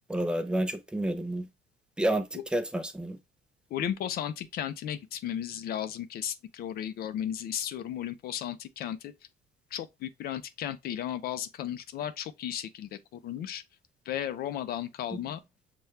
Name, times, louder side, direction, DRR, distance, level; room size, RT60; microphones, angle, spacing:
voice 1, 0.1-1.5 2.0-3.2 15.1-15.2, right 1 dB, 5° right, 0.5 m, -30 dB
voice 2, 3.7-9.1 9.7-13.6 14.1-15.4, left 10 dB, 65° left, 0.5 m, -35 dB
5.7 x 2.3 x 3.1 m
cardioid pair, 110°, 17 cm